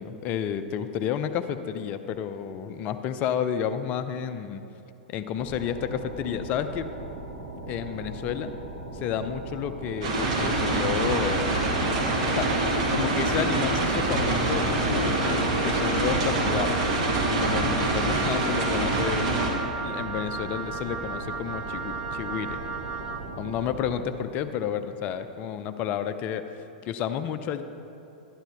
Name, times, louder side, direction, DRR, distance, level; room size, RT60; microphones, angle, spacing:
voice 1, 0.0-4.6 5.1-6.9 7.7-8.5 8.9-11.5 12.3-12.5 12.9-16.8 17.4-19.3 19.8-22.6 23.4-27.6, left 9 dB, 35° left, 10 dB, 0.5 m, -31 dB
sound 1, 5.4-23.9, right 2 dB, 80° right, 1.8 m, -39 dB
sound 2, 10.0-19.5, right 2 dB, 55° right, 2.0 m, -25 dB
Wind instrument woodwind instrument, 15.0-23.3, right 5 dB, 25° right, 0.9 m, -36 dB
11.5 x 11.5 x 3.5 m, 3.0 s
figure-of-eight pair, 100°, 4 cm